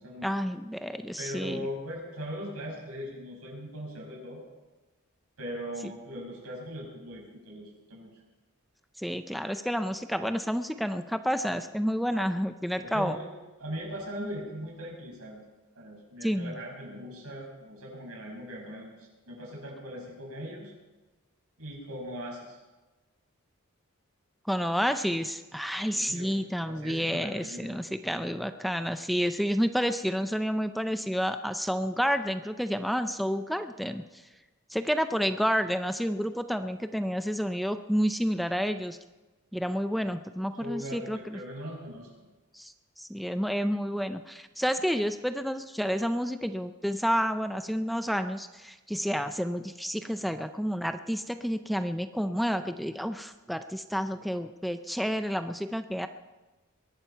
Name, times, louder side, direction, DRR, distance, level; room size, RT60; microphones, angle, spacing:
voice 1, 0.2-1.6 9.0-13.2 16.2-16.5 24.5-34.2 34.7-39.0 39.5-41.4 42.5-56.1, equal, ahead, 9 dB, 0.4 m, -30 dB
voice 2, 1.2-4.4 5.4-8.1 12.8-13.3 13.6-15.4 15.8-20.7 21.6-22.6 25.9-26.4 26.6-27.8 40.6-42.1, equal, 85° right, -1 dB, 6.3 m, -40 dB
22.0 x 11.5 x 4.5 m, 1.2 s
head